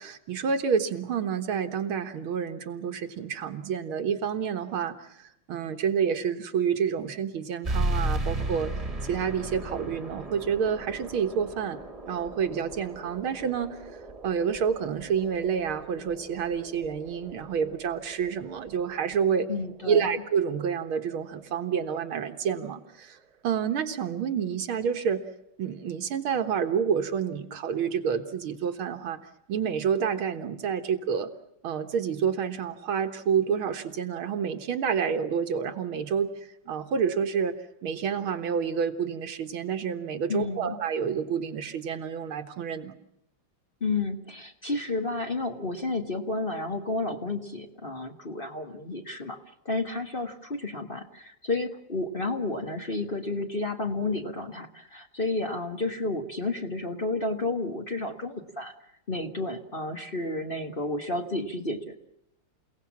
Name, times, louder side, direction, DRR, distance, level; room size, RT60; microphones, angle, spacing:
voice 1, 0.0-8.7 9.0-11.8 12.1-13.8 14.2-19.5 19.9-23.2 23.4-25.2 25.6-29.2 29.5-31.3 31.6-36.4 36.7-37.6 37.8-42.9, right 7 dB, 75° right, 7 dB, 2.3 m, -28 dB
sound 1, 7.6-22.7, right 2 dB, 15° right, 1.9 m, -37 dB
voice 2, 19.5-20.1 40.3-40.8 43.8-49.4 49.6-58.7 59.1-61.9, left 2 dB, 30° left, 5 dB, 1.5 m, -31 dB
29.0 x 17.5 x 7.4 m, 0.81 s
omnidirectional pair, 2.3 m